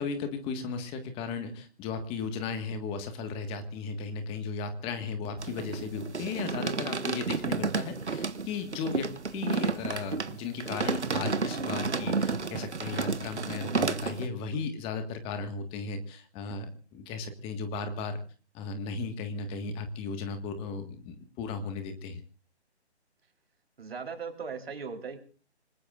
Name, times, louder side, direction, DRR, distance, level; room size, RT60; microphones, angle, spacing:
voice 1, 0.0-18.2 18.5-22.2, left 4 dB, 15° left, 8 dB, 1.6 m, -36 dB
sound 1, 5.4-14.3, right 4 dB, 85° right, 1.5 m, -31 dB
voice 2, 23.8-25.2, right 5 dB, 60° right, 5 dB, 3.9 m, -38 dB
26.0 x 20.5 x 2.5 m, 0.40 s
figure-of-eight pair, 145°, 34 cm